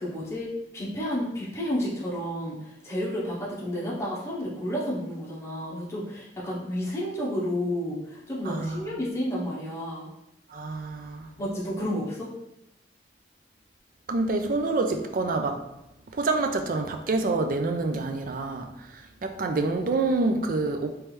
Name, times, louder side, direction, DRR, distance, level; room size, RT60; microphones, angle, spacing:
voice 1, 0.0-10.1 11.4-12.3, equal, 15° left, -6 dB, 0.9 m, -31 dB
voice 2, 8.4-8.9 10.5-11.3 14.1-15.6 16.1-20.9, right 3 dB, 50° right, 5 dB, 0.4 m, -27 dB
3.3 x 3.1 x 3.2 m, 0.89 s
head